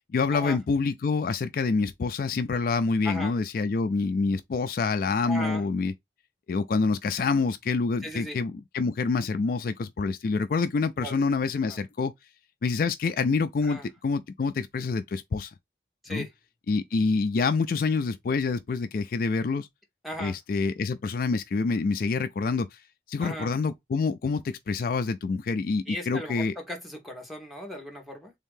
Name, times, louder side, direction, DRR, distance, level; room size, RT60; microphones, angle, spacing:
voice 1, 0.1-5.9 6.5-12.1 12.6-15.5 16.1-16.3 16.7-19.7 20.2-22.8 23.1-26.5, left 4 dB, 55° left, 0.3 m, -27 dB
voice 2, 5.3-5.6 8.0-8.4 11.0-11.3 11.7-11.8 13.6-13.9 16.0-16.3 20.0-20.4 23.2-23.5 25.9-28.3, equal, ahead, 1.1 m, -37 dB
3.5 x 2.7 x 3.5 m
head